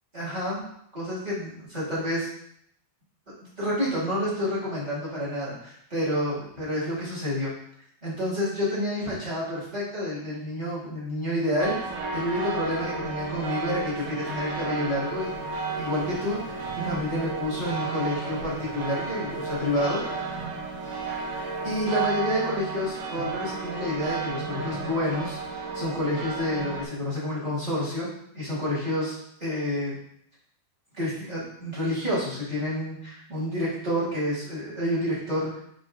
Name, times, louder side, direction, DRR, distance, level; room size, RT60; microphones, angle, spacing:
voice 1, 0.1-0.6 0.9-2.3 3.6-7.5 8.0-11.8 12.1-20.0 21.6-28.1 28.3-29.1 29.4-29.9 30.9-35.5, left 1 dB, 20° right, -9 dB, 1.2 m, -29 dB
sound 1, 11.6-26.8, right 4 dB, 75° right, 1.8 m, -33 dB
6.5 x 5.1 x 3.7 m, 0.71 s
omnidirectional pair, 4.7 m